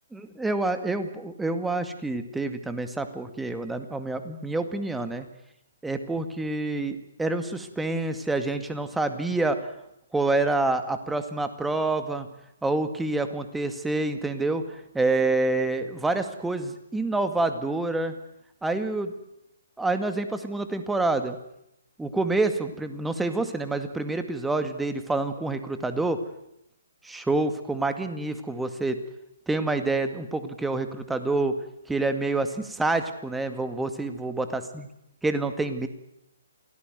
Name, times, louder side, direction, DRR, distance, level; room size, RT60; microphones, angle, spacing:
voice 1, 0.1-5.3 5.8-9.6 10.1-12.3 12.6-14.6 14.9-18.1 18.6-19.1 19.8-21.4 22.0-26.2 27.0-29.0 29.5-31.5 31.9-34.9 35.2-35.9, right 2 dB, 5° right, 8 dB, 2.1 m, -27 dB
28.0 x 18.5 x 9.3 m, 0.80 s
figure-of-eight pair, 135°, 0 cm